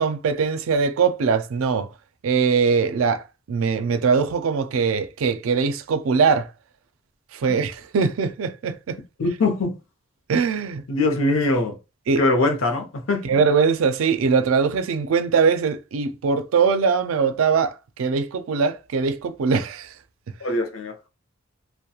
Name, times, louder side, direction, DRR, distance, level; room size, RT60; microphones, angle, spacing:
voice 1, 0.0-1.9 2.2-6.5 7.3-9.0 10.3-10.8 12.1-12.2 13.2-19.9, right 5 dB, 90° right, 0.4 m, -21 dB
voice 2, 9.2-9.8 10.9-11.8 12.2-13.3 20.4-21.1, left 2 dB, 80° left, 0.6 m, -22 dB
2.3 x 2.1 x 2.8 m
head